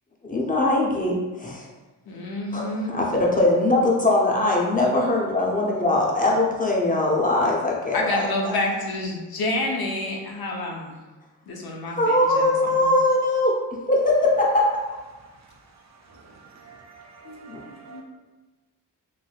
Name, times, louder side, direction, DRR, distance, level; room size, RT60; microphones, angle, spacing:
voice 1, 0.3-1.7 2.5-8.6 12.0-13.6 13.9-14.6 17.5-17.6, left 2 dB, 20° left, 0.7 m, -21 dB
voice 2, 2.1-2.9 7.9-11.0 11.5-12.5 17.2-17.6 17.9-18.0, left 2 dB, 60° left, 0.6 m, -28 dB
voice 3, 15.3-18.0, right 5 dB, 40° right, 0.5 m, -49 dB
3.2 x 2.6 x 2.4 m
cardioid pair, 65°, 42 cm